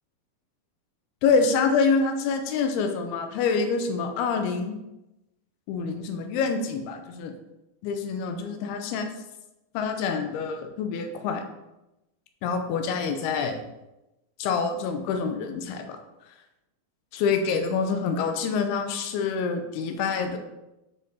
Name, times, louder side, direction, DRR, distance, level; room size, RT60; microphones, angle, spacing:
voice 1, 1.2-4.7 5.7-7.3 7.8-9.1 9.7-11.4 12.4-13.6 14.4-16.0 17.1-20.4, left 5 dB, 80° left, 5 dB, 2.6 m, -26 dB
7.3 x 4.1 x 4.0 m, 0.94 s
omnidirectional pair, 4.6 m